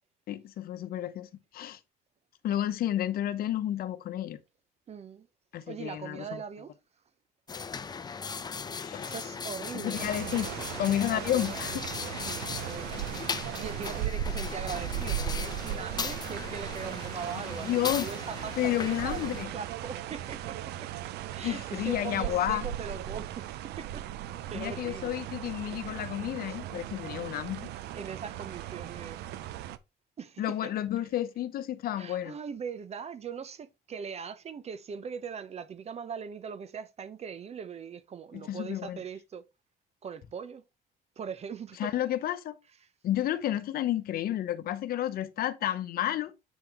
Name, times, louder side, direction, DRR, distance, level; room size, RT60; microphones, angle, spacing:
voice 1, 0.3-1.8 2.4-4.4 5.5-6.3 8.3-8.4 8.7-9.1 9.7-10.5 10.8-11.8 17.6-18.1 18.6-19.5 21.4-22.7 24.5-27.7 30.4-32.3 38.3-39.0 41.8-42.6 43.0-46.3, left 12 dB, 60° left, 0.9 m, -31 dB
voice 2, 4.9-5.3 5.7-6.7 9.0-10.1 10.3-10.4 11.1-11.8 12.1-20.9 21.3-24.1 24.5-25.7 26.4-26.6 26.9-27.0 27.9-29.2 30.2-30.7 32.0-39.4 40.0-40.6 41.2-41.9, right 6 dB, 40° right, 0.8 m, -41 dB
sound 1, 7.5-19.4, left 5 dB, 25° left, 0.7 m, -38 dB
sound 2, 9.9-29.8, right 11 dB, 80° right, 0.6 m, -37 dB
8.2 x 5.7 x 3.1 m
cardioid pair, 110°, 17 cm